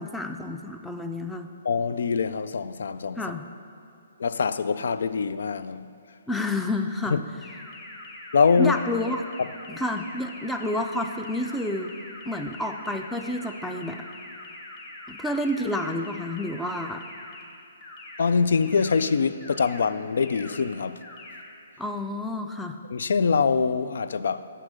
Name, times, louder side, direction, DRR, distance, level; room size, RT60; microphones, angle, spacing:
voice 1, 0.0-1.5 3.2-3.5 6.3-7.2 8.6-9.3 9.7-11.9 12.3-14.0 15.1-17.0 21.8-22.8, left 1 dB, 5° left, 0.5 m, -29 dB
voice 2, 1.6-3.2 4.2-5.9 7.1-7.2 8.3-8.7 9.4-9.5 18.2-21.0 22.9-24.5, left 5 dB, 70° left, 0.3 m, -24 dB
sound 1, 7.4-17.4 17.8-18.2 18.6-19.0 19.4-19.8 20.2-20.6 21.0-21.4, left 2 dB, 35° left, 1.2 m, -43 dB
6.7 x 6.0 x 6.4 m
hypercardioid pair, 135°, 0 cm